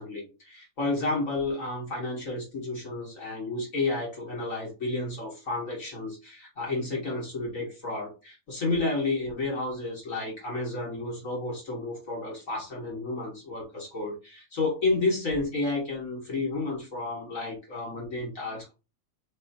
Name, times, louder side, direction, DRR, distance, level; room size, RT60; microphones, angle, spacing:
voice 1, 0.0-18.7, left 2 dB, 50° left, -3 dB, 0.9 m, -31 dB
4.7 x 4.1 x 2.7 m, 0.29 s
omnidirectional pair, 3.8 m